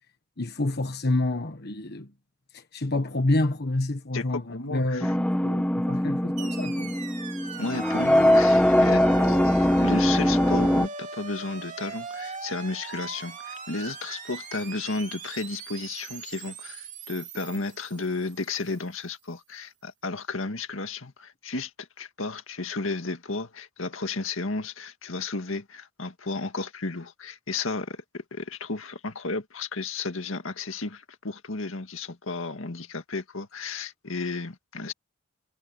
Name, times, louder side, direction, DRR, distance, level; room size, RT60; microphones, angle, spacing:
voice 1, 0.4-2.1 2.5-7.0, left 2 dB, 50° left, 1.4 m, -28 dB
voice 2, 4.1-5.2 5.9-6.0 7.6-34.9, left 3 dB, 80° left, 1.9 m, -33 dB
sound 1, 5.0-10.9, left 1 dB, 5° left, 0.6 m, -22 dB
sound 2, 6.4-18.6, right 5 dB, 35° right, 3.4 m, -40 dB
head